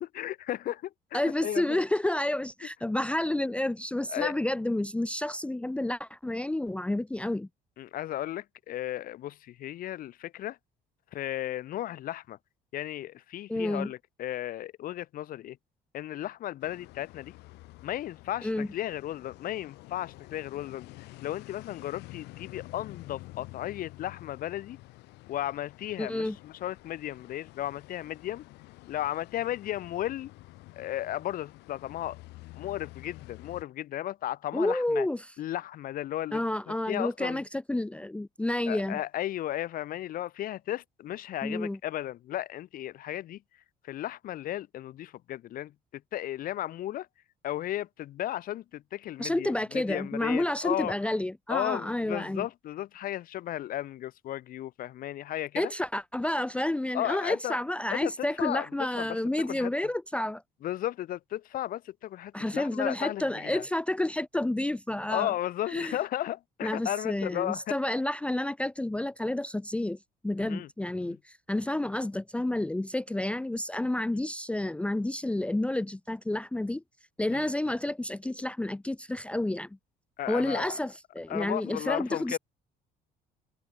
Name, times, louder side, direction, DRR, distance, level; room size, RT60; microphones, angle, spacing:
voice 1, 0.0-1.8 4.1-4.4 7.8-10.6 11.1-12.4 12.7-15.6 15.9-17.3 17.8-24.8 25.3-28.4 28.9-30.3 30.7-32.2 32.5-35.1 35.4-36.4 36.7-37.4 38.7-43.4 43.8-47.1 47.4-50.9 51.5-55.7 56.9-57.6 57.9-58.7 59.0-59.7 60.6-63.6 65.1-67.8 70.4-70.7 71.0-71.2 77.3-77.5 80.2-80.8 81.3-82.4, left 13 dB, 55° left, 0.8 m, -35 dB
voice 2, 1.1-7.5 13.5-13.9 18.4-18.7 26.0-26.4 34.5-35.2 36.3-39.0 41.4-41.8 49.2-52.5 55.6-60.4 62.3-65.3 65.7-66.0 66.6-70.0 70.2-76.8 77.2-79.7 80.3-82.4, left 1 dB, 5° left, 0.6 m, -30 dB
sound 1, 16.6-33.6, left 20 dB, 85° left, 3.0 m, -49 dB
cardioid pair, 120°, 17 cm